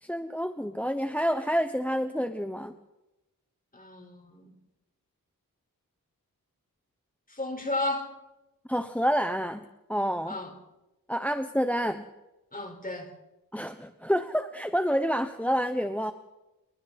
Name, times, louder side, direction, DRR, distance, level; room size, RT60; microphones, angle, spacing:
voice 1, 0.0-2.7 8.7-9.6 9.9-10.4 11.1-12.1 13.5-16.1, equal, 5° left, 9 dB, 1.0 m, -28 dB
voice 2, 3.7-4.5 7.3-8.1 10.3-10.5 12.5-13.1, left 2 dB, 25° left, 4 dB, 4.9 m, -33 dB
28.0 x 23.0 x 4.3 m, 0.98 s
wide cardioid pair, 95°, 35 cm